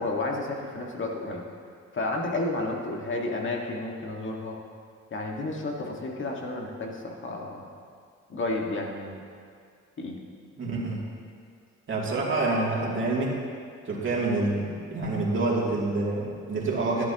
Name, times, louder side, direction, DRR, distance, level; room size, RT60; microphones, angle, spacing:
voice 1, 0.0-1.4 1.9-4.6 5.1-7.7 8.3-9.2 10.0-10.2, left 2 dB, 40° left, 0 dB, 1.8 m, -31 dB
voice 2, 10.6-11.0 11.9-13.3 13.8-17.0, right 2 dB, 40° right, -4 dB, 2.8 m, -27 dB
13.5 x 11.0 x 3.0 m, 2.2 s
cardioid pair, 90°, 30 cm